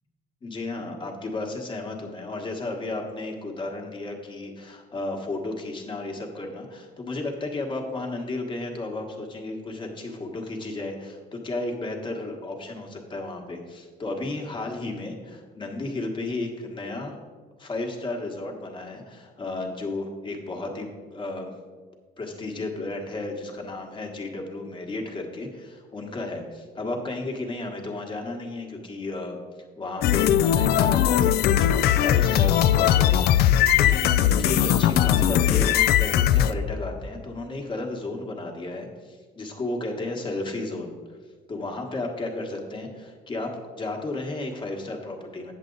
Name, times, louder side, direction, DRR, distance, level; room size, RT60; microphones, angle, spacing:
voice 1, 0.4-17.2 17.6-21.5 22.2-29.4 29.8-41.0 41.5-45.5, left 2 dB, 30° left, 1 dB, 1.3 m, -33 dB
sound 1, 30.0-36.5, left 11 dB, 70° left, 0.4 m, -20 dB
8.1 x 7.4 x 3.9 m, 1.5 s
cardioid pair, 110°, 17 cm